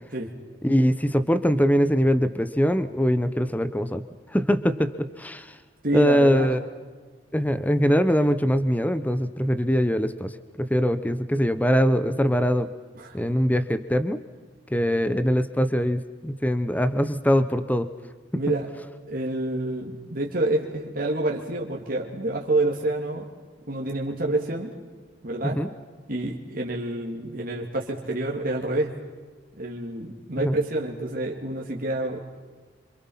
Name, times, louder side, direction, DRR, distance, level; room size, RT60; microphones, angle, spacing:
voice 1, 0.6-4.0 4.3-5.6 5.9-6.6 7.3-12.7 13.1-14.2 14.7-17.9 25.4-25.7 30.4-30.6, equal, 10° left, 12 dB, 0.9 m, -22 dB
voice 2, 5.8-6.6 13.0-13.2 18.3-18.7 19.1-23.3 23.7-24.7 25.2-25.6 26.1-29.0 29.5-32.2, right 2 dB, 50° right, -1 dB, 2.7 m, -28 dB
27.5 x 26.5 x 5.7 m, 1.4 s
head